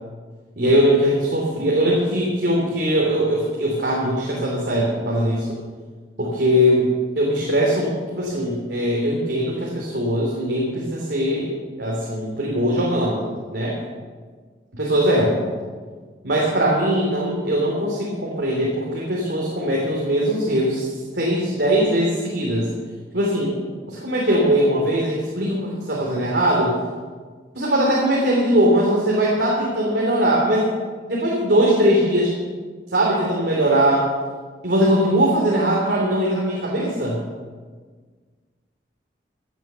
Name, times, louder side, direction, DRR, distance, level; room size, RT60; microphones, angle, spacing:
voice 1, 0.6-5.5 6.2-13.2 13.5-13.8 14.7-15.4 16.2-22.7 23.1-23.5 23.9-26.7 27.5-30.7 31.1-32.3 32.9-34.1 34.6-37.2, equal, 75° right, -3 dB, 2.9 m, -20 dB
15.5 x 9.3 x 6.8 m, 1.5 s
head